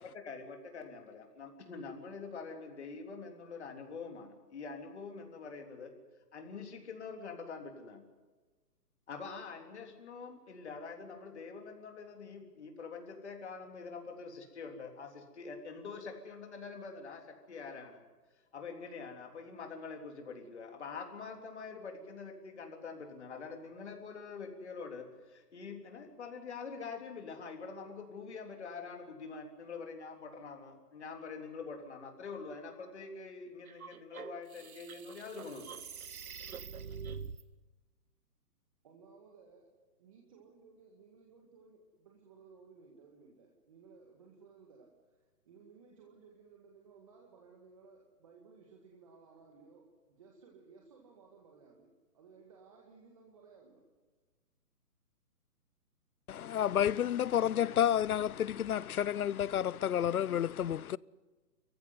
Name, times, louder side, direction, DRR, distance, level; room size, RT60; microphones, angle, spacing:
voice 1, 0.1-5.9 6.3-8.0 9.1-17.2 17.5-18.0 18.5-35.8, left 4 dB, 45° left, 3.6 m, -45 dB
sound 1, 33.7-37.4, right 6 dB, 65° right, 1.2 m, -45 dB
voice 2, 38.8-39.7 40.0-51.9 52.1-53.8, right 5 dB, 20° right, 1.9 m, -59 dB
voice 3, 56.3-61.0, left 10 dB, 65° left, 0.6 m, -30 dB
26.5 x 15.0 x 9.6 m
hypercardioid pair, 175°, 47 cm